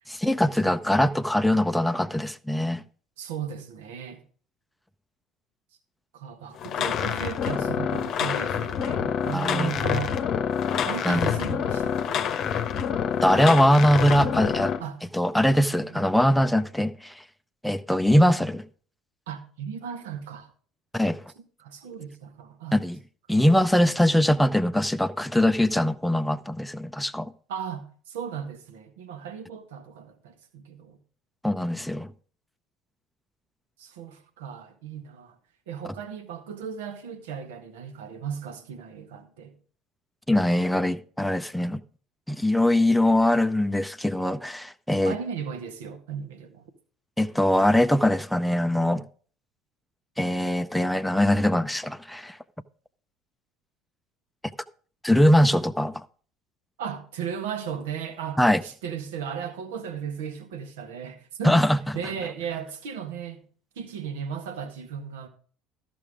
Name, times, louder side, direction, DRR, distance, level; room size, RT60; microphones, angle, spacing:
voice 1, 0.1-2.8 9.3-9.7 11.1-11.3 13.2-14.7 15.1-17.1 17.6-18.6 20.9-21.2 22.7-23.0 23.3-27.3 31.4-32.1 40.3-41.8 42.3-45.1 47.2-49.0 50.2-52.4 55.0-55.9 58.4-58.6 61.4-61.8, left 1 dB, 5° left, 0.6 m, -22 dB
voice 2, 3.2-4.2 6.1-10.2 10.8-12.2 14.8-15.0 15.7-16.1 19.3-20.5 21.6-22.8 23.3-23.4 27.5-31.0 33.8-35.4 35.7-39.5 45.0-46.6 56.8-61.6 61.9-63.4 63.7-65.3, right 7 dB, 70° right, 1.5 m, -36 dB
sound 1, 6.6-14.8, left 8 dB, 50° left, 0.9 m, -27 dB
13.5 x 6.0 x 4.9 m
figure-of-eight pair, 65°, 0 cm